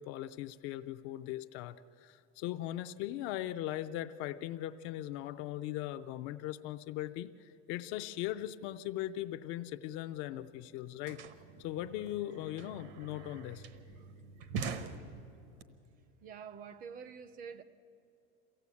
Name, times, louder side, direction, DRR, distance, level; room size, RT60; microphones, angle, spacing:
voice 1, 0.0-11.2 11.6-13.7, left 13 dB, 40° left, 0.5 m, -39 dB
sound 1, 10.1-10.2 10.4-15.6, right 5 dB, 65° right, 1.2 m, -44 dB
voice 2, 16.2-17.6, right 6 dB, 30° right, 0.6 m, -47 dB
23.5 x 16.0 x 8.4 m
cardioid pair, 170°, 31 cm